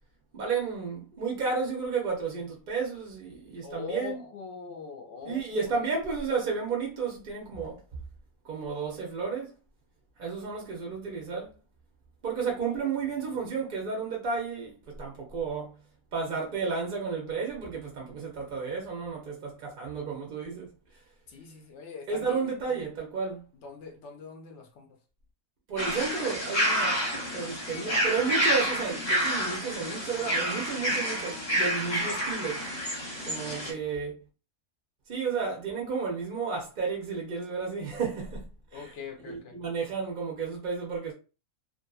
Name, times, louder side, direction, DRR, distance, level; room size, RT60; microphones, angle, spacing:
voice 1, 0.3-4.2 5.2-7.8 8.4-9.5 10.2-11.5 12.2-15.8 16.1-20.7 22.1-23.4 25.7-32.7 33.2-34.1 35.1-38.9 39.2-41.1, right 5 dB, 55° right, 0.6 m, -32 dB
voice 2, 3.6-5.9 12.7-13.4 21.3-22.8 23.6-25.0 33.6-33.8 38.7-39.6, left 5 dB, 65° left, 0.7 m, -43 dB
sound 1, 25.8-33.7, equal, 35° left, 0.8 m, -29 dB
2.5 x 2.5 x 2.3 m
omnidirectional pair, 1.5 m